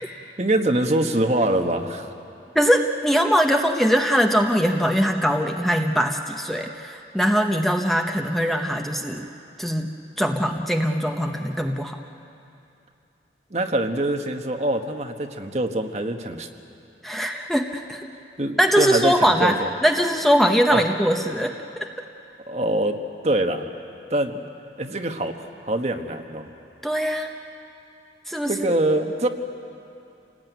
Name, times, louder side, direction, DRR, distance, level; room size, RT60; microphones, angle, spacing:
voice 1, 0.4-2.1 13.5-16.5 18.4-19.7 20.7-20.8 22.5-23.0 23.2-23.6 24.1-24.4 24.8-26.5 28.5-29.3, right 1 dB, 40° right, 5 dB, 1.3 m, -24 dB
voice 2, 2.5-9.3 9.6-12.0 17.0-18.0 18.6-21.9 26.8-27.3 28.3-28.8, equal, ahead, 3 dB, 0.9 m, -22 dB
28.0 x 18.5 x 9.3 m, 2.7 s
head